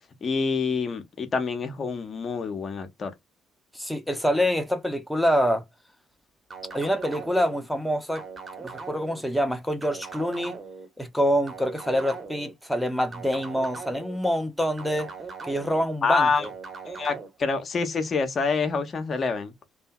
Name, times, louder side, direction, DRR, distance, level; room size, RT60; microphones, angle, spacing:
voice 1, 0.2-3.1 16.0-16.5 16.9-19.5, left 4 dB, 45° left, 0.6 m, -26 dB
voice 2, 3.7-5.6 6.7-8.3 8.6-10.6 11.0-15.1 15.4-16.5, equal, ahead, 0.6 m, -26 dB
sound 1, 6.5-7.6 8.2-9.2 9.8-10.9 11.5-12.5 13.1-14.2 14.8-15.8 16.4-17.3, right 4 dB, 35° right, 1.0 m, -40 dB
2.6 x 2.4 x 2.2 m
figure-of-eight pair, 45°, 0 cm